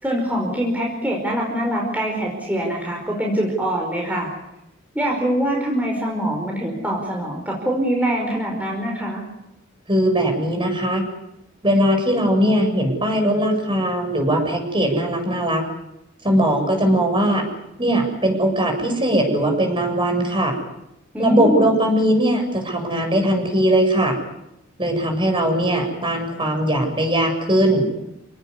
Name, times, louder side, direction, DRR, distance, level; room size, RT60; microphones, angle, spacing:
voice 1, 0.0-4.3 4.9-9.2 21.1-21.7, right 1 dB, 10° right, -1 dB, 5.2 m, -23 dB
voice 2, 9.9-11.0 11.6-15.6 16.2-17.4 17.8-20.6 21.2-24.2 24.8-27.9, right 1 dB, 25° right, 4 dB, 7.2 m, -20 dB
29.0 x 18.5 x 9.7 m, 0.86 s
head